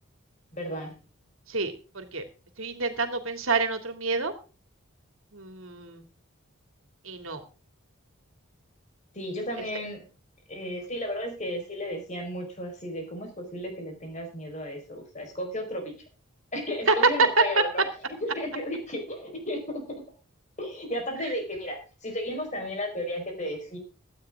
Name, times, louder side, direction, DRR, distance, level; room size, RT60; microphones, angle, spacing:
voice 1, 0.5-1.0 9.1-10.1 10.5-15.9 16.5-17.8 18.2-19.8 20.6-23.8, equal, 35° left, 3 dB, 4.7 m, -34 dB
voice 2, 1.5-2.2 2.6-4.3 5.3-6.0 7.0-7.4 16.9-17.0, right 3 dB, 70° right, 7 dB, 2.8 m, -29 dB
17.0 x 12.0 x 3.7 m, 0.34 s
head